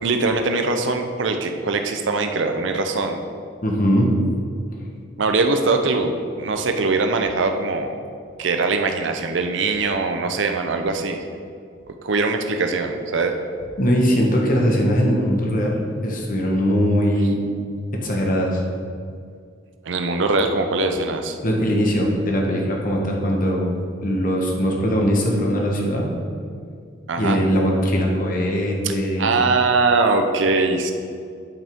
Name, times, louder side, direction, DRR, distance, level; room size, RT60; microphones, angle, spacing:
voice 1, 0.0-3.2 5.2-6.1 6.4-7.9 8.4-11.2 12.0-13.3 19.8-21.4 27.1-27.4 28.8-28.9 29.2-30.9, right 3 dB, 70° right, 5 dB, 0.6 m, -21 dB
voice 2, 3.6-4.1 13.8-17.4 17.9-18.6 21.4-23.7 24.0-26.1 27.2-29.3, equal, 45° left, 0 dB, 1.2 m, -20 dB
9.0 x 5.5 x 3.6 m, 2.2 s
head